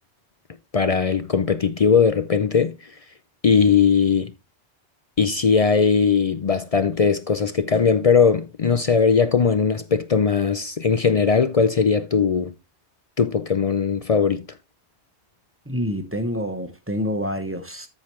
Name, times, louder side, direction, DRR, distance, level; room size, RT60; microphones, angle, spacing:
voice 1, 0.7-2.8 3.4-4.3 5.2-12.5 13.2-14.5, left 5 dB, 50° left, 0.4 m, -19 dB
voice 2, 15.7-17.9, equal, 10° right, 1.1 m, -27 dB
13.5 x 5.1 x 3.1 m
omnidirectional pair, 1.2 m